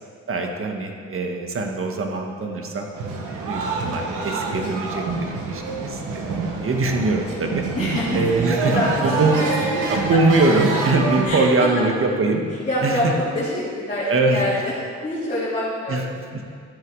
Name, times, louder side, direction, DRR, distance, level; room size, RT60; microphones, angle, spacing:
voice 1, 0.3-2.9 3.4-7.6 8.1-8.7 9.0-9.4 9.9-12.4 12.8-13.1 14.0-14.4 15.9-16.0 16.3-16.4, right 3 dB, 45° right, 2 dB, 1.6 m, -22 dB
sound 1, 3.0-11.2, right 3 dB, 90° right, 1.5 m, -27 dB
voice 2, 7.7-9.8 10.1-10.2 11.2-11.8 12.6-14.7 15.0-16.1, left 1 dB, 25° left, -10 dB, 3.4 m, -26 dB
13.5 x 7.6 x 4.9 m, 2.1 s
cardioid pair, 90°, 30 cm